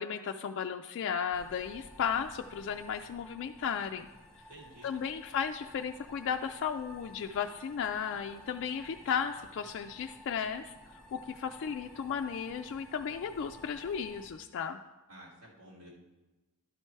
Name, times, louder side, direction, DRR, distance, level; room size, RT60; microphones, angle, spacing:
voice 1, 0.0-4.1 4.8-10.7 11.1-14.8, left 7 dB, 55° left, 4 dB, 0.3 m, -35 dB
sound 1, 1.3-14.3, equal, 5° left, 0.9 m, -54 dB
voice 2, 4.5-4.9 15.1-15.9, right 1 dB, 75° right, -5 dB, 2.8 m, -52 dB
11.5 x 4.4 x 4.6 m, 1.1 s
head